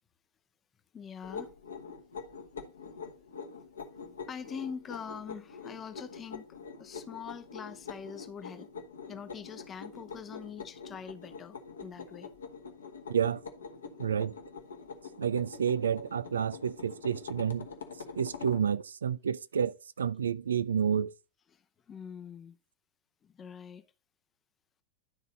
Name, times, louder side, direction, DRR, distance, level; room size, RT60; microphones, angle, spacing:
voice 1, 0.9-1.5 4.1-8.7 9.1-12.3 21.5-22.6 23.2-23.9, left 7 dB, 20° left, 0.8 m, -44 dB
sound 1, 1.2-18.7, left 5 dB, 70° left, 1.2 m, -45 dB
voice 2, 13.1-13.4 14.0-14.3 15.2-17.7 18.2-21.1, right 7 dB, 70° right, 0.3 m, -30 dB
11.5 x 4.0 x 4.0 m
figure-of-eight pair, 90°, 0 cm